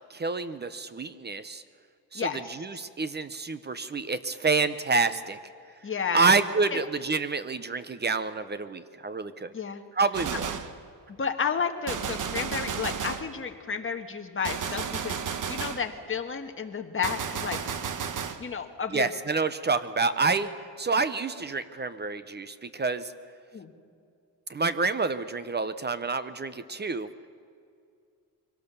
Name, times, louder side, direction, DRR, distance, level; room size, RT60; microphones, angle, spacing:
voice 1, 0.1-1.6 2.1-5.4 6.1-9.5 9.9-10.5 18.9-20.5 20.8-23.1 24.5-27.1, right 4 dB, 25° right, 13 dB, 0.7 m, -28 dB
voice 2, 2.1-2.5 5.8-6.3 6.7-6.9 9.5-9.8 11.2-17.6 18.4-19.1 23.5-23.7, left 6 dB, 30° left, 5 dB, 1.5 m, -32 dB
Gunshot gunfire, 10.1-10.8 11.9-13.3 14.4-15.9 17.0-18.4, right 7 dB, 45° right, 1.1 m, -33 dB
23.5 x 17.5 x 6.9 m, 2.3 s
cardioid pair, 140°, 41 cm